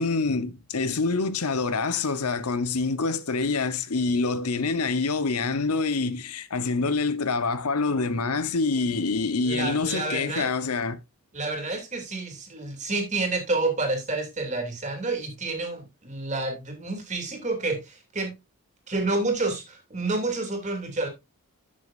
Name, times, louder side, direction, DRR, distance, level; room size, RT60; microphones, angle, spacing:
voice 1, 0.0-11.0, left 4 dB, 90° left, 0.9 m, -26 dB
voice 2, 9.4-10.5 11.3-18.3 18.9-21.1, right 3 dB, 30° right, 2.6 m, -29 dB
13.0 x 6.4 x 2.5 m
head